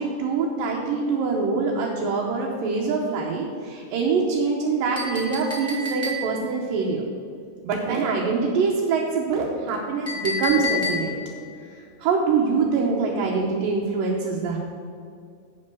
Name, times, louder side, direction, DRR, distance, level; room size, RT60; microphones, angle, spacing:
voice 1, 0.0-7.0 7.6-11.2 12.0-14.6, right 4 dB, 80° right, -2 dB, 2.7 m, -24 dB
Chink clink, 4.9-6.5 10.1-11.3, left 3 dB, 10° left, 0.9 m, -29 dB
8.4 x 7.7 x 6.1 m, 2.2 s
omnidirectional pair, 3.9 m